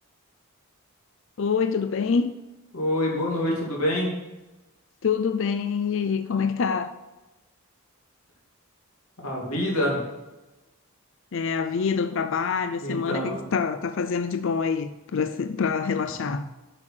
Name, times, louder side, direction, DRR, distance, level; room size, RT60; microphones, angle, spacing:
voice 1, 1.4-2.3 5.0-6.9 11.3-16.4, left 5 dB, 55° left, 0.4 m, -26 dB
voice 2, 2.7-4.1 9.2-10.0 12.8-13.4, left 1 dB, 75° left, 2.6 m, -26 dB
7.8 x 6.4 x 6.1 m
head